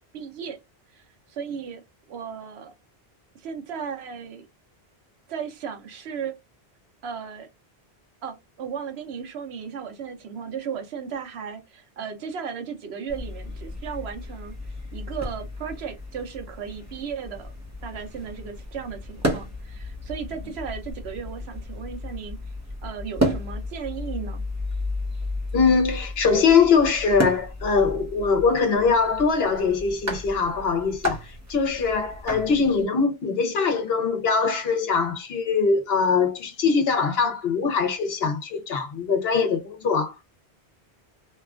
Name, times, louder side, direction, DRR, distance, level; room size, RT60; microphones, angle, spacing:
voice 1, 0.1-0.6 0.9-1.8 2.1-2.7 3.3-4.4 5.3-6.4 7.0-7.5 8.2-14.6 14.9-17.5 17.8-22.4 22.8-24.4, right 7 dB, 85° right, 1.0 m, -35 dB
sound 1, 13.1-32.8, left 1 dB, 20° right, 0.8 m, -33 dB
voice 2, 25.5-31.2 31.5-40.1, left 5 dB, 75° left, 1.0 m, -22 dB
2.9 x 2.3 x 2.3 m
omnidirectional pair, 1.1 m